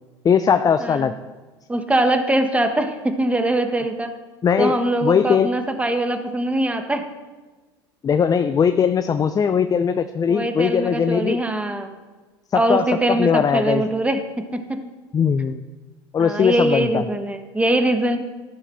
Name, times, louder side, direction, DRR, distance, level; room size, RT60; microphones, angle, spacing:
voice 1, 0.2-1.1 4.4-5.5 8.0-11.4 12.5-13.8 15.1-15.6 16.1-17.0, left 7 dB, 25° left, 10 dB, 0.5 m, -19 dB
voice 2, 1.7-4.1 4.6-7.0 10.3-11.9 12.5-14.8 16.2-18.2, right 1 dB, 10° right, 6 dB, 1.4 m, -22 dB
13.5 x 7.2 x 5.8 m, 1.3 s
hypercardioid pair, 80°, 14 cm